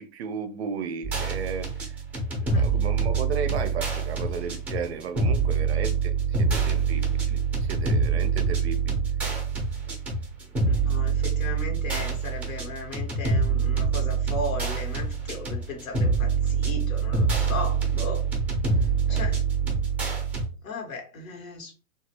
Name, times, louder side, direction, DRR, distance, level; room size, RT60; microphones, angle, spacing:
voice 1, 0.0-2.0 2.4-9.0 19.1-19.2, right 6 dB, 50° right, 0.5 m, -34 dB
sound 1, 1.0-20.5, right 5 dB, 5° right, 0.5 m, -25 dB
voice 2, 10.7-18.3 18.7-19.4 20.6-21.7, left 2 dB, 65° left, 1.3 m, -36 dB
2.8 x 2.4 x 2.9 m
figure-of-eight pair, 115°, 43 cm